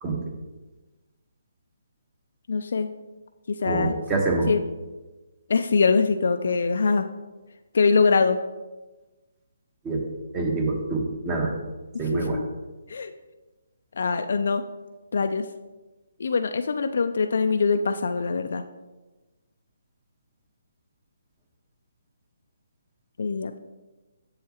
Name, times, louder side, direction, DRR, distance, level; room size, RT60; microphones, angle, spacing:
voice 1, 2.5-2.9 3.5-3.9 4.5-4.6 5.5-7.1 7.7-8.4 12.1-12.4 12.9-13.1 14.0-14.6 15.1-15.5 16.2-18.6 23.2-23.6, left 4 dB, 65° left, 7 dB, 0.4 m, -23 dB
voice 2, 3.6-4.5 9.8-10.0 10.3-11.5 12.0-12.4, right 3 dB, 20° right, 1 dB, 1.2 m, -26 dB
7.6 x 7.1 x 2.9 m, 1.2 s
hypercardioid pair, 150°, 0 cm